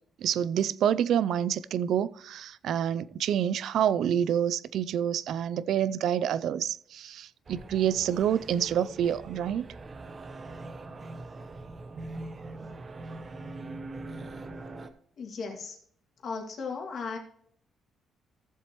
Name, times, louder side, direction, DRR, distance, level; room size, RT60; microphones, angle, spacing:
voice 1, 0.2-9.7, right 9 dB, 75° right, 0.4 m, -27 dB
sound 1, 7.5-14.9, right 2 dB, 35° right, 0.9 m, -42 dB
voice 2, 15.2-15.8 16.2-17.2, left 4 dB, 60° left, 2.2 m, -36 dB
14.5 x 7.3 x 3.0 m
cardioid pair, 90°, 0 cm